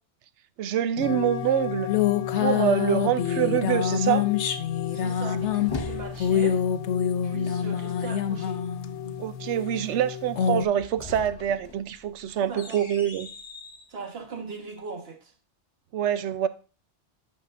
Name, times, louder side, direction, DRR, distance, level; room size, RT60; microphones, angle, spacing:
voice 1, 0.6-1.9 2.4-4.2 9.2-13.3 15.9-16.5, right 10 dB, 80° right, 0.9 m, -25 dB
sound 1, 1.0-10.6, left 9 dB, 75° left, 0.9 m, -26 dB
voice 2, 4.9-6.6 7.2-8.6 12.4-12.8 13.9-15.3, right 4 dB, 60° right, 1.5 m, -39 dB
sound 2, 5.1-6.6 10.6-13.9, left 3 dB, 30° left, 0.6 m, -40 dB
9.7 x 6.5 x 2.5 m
omnidirectional pair, 1.2 m